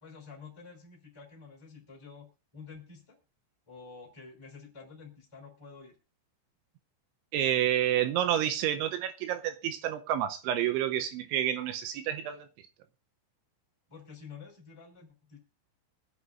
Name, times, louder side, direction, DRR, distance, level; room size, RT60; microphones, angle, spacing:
voice 1, 0.0-2.3 2.5-3.2 3.7-5.9 13.9-15.4, left 5 dB, 10° left, 2.4 m, -49 dB
voice 2, 7.3-12.5, right 11 dB, 80° right, 3.0 m, -29 dB
24.0 x 8.3 x 2.5 m
omnidirectional pair, 5.6 m